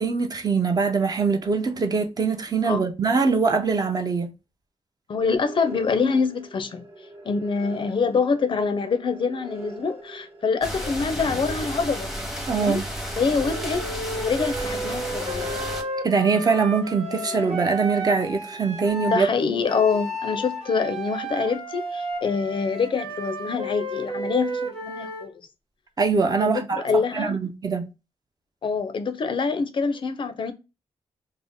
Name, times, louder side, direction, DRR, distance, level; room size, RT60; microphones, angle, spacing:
voice 1, 0.0-4.3 12.5-12.8 16.0-19.3 26.0-27.9, right 4 dB, 35° right, 0.5 m, -23 dB
voice 2, 5.1-6.9 7.2-12.1 12.5-12.8 13.2-13.9 14.2-15.5 19.1-25.4 26.4-27.4 28.6-30.5, left 5 dB, 50° left, 0.4 m, -25 dB
sound 1, 5.4-18.9, right 1 dB, 60° right, 1.2 m, -43 dB
sound 2, 10.6-15.8, equal, ahead, 0.8 m, -32 dB
Wind instrument woodwind instrument, 13.4-19.3 19.7-25.3, right 1 dB, 90° right, 1.0 m, -32 dB
2.6 x 2.0 x 3.5 m
wide cardioid pair, 110°, 11 cm